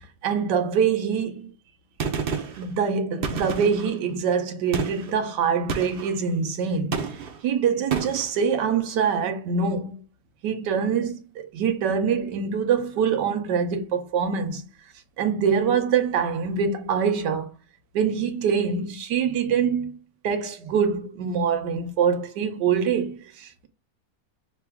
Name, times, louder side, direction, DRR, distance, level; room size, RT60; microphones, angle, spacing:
voice 1, 0.0-1.5 2.6-7.2 7.4-10.0 10.4-14.6 15.2-17.5 17.9-20.0 20.2-23.7, right 6 dB, 85° right, 1.4 m, -24 dB
Gunshot gunfire, 2.0-2.7 3.2-3.9 4.7-5.1 5.7-6.1 6.9-7.4 7.9-8.3, right 5 dB, 60° right, 0.6 m, -30 dB
5.8 x 2.3 x 3.4 m
omnidirectional pair, 1.8 m